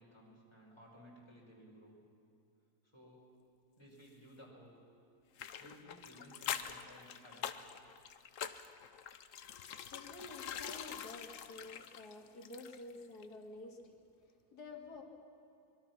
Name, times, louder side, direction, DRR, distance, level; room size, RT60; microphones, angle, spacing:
voice 1, 0.0-2.0 2.8-3.3 3.8-4.9 5.6-7.7, equal, 15° left, -3 dB, 5.2 m, -58 dB
sound 1, 5.4-13.0 13.2-13.3, left 8 dB, 60° left, 1.1 m, -45 dB
voice 2, 9.5-15.0, left 2 dB, 85° left, 2 dB, 2.6 m, -51 dB
25.0 x 22.0 x 6.0 m, 2.6 s
omnidirectional pair, 1.7 m